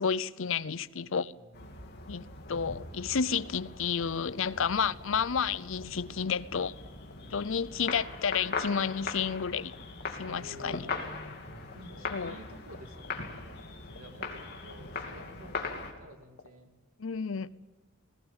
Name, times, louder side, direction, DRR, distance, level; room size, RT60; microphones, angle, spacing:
voice 1, 0.0-1.3 2.1-2.2 2.5-6.7 7.3-9.7 10.2-10.9 12.1-12.3 17.0-17.5, left 6 dB, 65° left, 0.6 m, -31 dB
voice 2, 1.3-2.1 7.2-7.7 10.3-10.9 11.4-16.7, right 1 dB, 85° right, 2.6 m, -52 dB
sound 1, 1.5-15.9, left 4 dB, 50° left, 2.8 m, -40 dB
sound 2, 3.1-16.5, left 4 dB, 90° left, 1.4 m, -48 dB
20.0 x 16.5 x 8.9 m
head